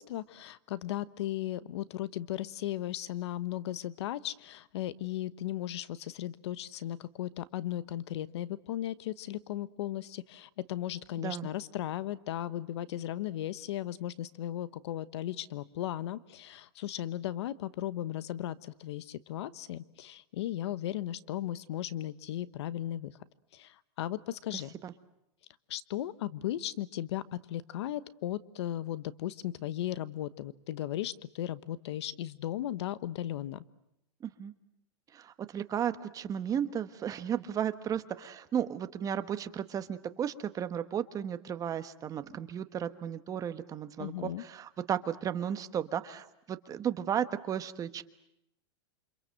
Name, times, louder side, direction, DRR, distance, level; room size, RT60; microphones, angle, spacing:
voice 1, 0.0-23.1 23.5-24.7 25.7-33.6 44.0-44.4, left 13 dB, 70° left, 16 dB, 1.1 m, -36 dB
voice 2, 11.2-11.5 24.5-24.9 34.2-34.5 35.1-48.0, right 9 dB, 25° right, 11 dB, 1.3 m, -34 dB
28.5 x 26.0 x 7.7 m, 0.81 s
supercardioid pair, 135°, 15 cm